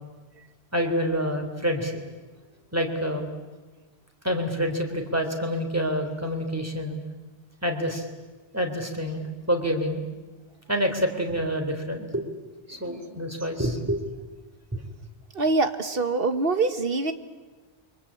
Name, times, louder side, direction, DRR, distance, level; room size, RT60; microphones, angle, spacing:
voice 1, 0.7-2.0 2.7-3.2 4.2-7.0 7.6-8.1 8.5-10.0 10.7-12.3 12.7-14.0 14.7-14.9, equal, 15° right, 4 dB, 3.4 m, -27 dB
voice 2, 15.3-17.1, right 3 dB, 60° right, 9 dB, 1.7 m, -24 dB
28.5 x 24.0 x 8.6 m, 1.3 s
omnidirectional pair, 1.1 m